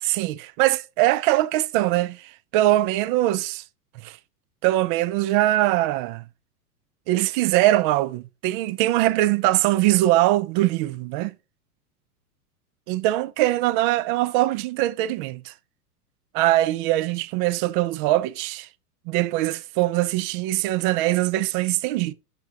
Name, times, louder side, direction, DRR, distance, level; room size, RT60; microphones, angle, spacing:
voice 1, 0.0-3.6 4.0-4.2 4.6-6.2 7.1-11.3 12.9-15.5 16.3-18.7 19.1-22.1, right 16 dB, 35° right, 0.6 m, -22 dB
6.8 x 6.0 x 2.9 m
figure-of-eight pair, 95°, 46 cm